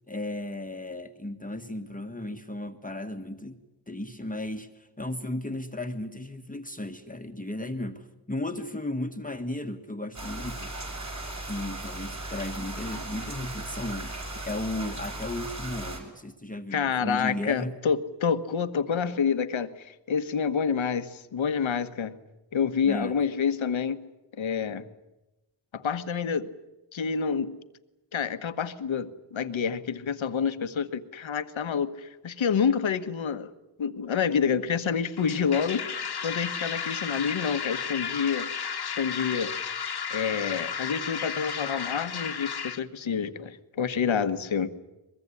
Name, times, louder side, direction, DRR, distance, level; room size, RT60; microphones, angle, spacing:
voice 1, 0.1-3.6 3.9-10.7 11.4-17.8 22.8-23.2, left 1 dB, 15° left, 5 dB, 1.5 m, -35 dB
sound 1, 10.1-16.0, right 2 dB, 35° right, 6.7 m, -37 dB
voice 2, 16.7-22.2 22.5-24.0 24.4-24.8 25.7-26.5 26.9-27.5 28.1-33.5 33.8-38.5 38.8-39.5 40.1-44.7, left 6 dB, 85° left, 11 dB, 1.5 m, -28 dB
sound 2, 35.2-42.8, left 7 dB, 55° left, 1.5 m, -33 dB
22.5 x 22.5 x 9.9 m, 1.0 s
wide cardioid pair, 100°, 45 cm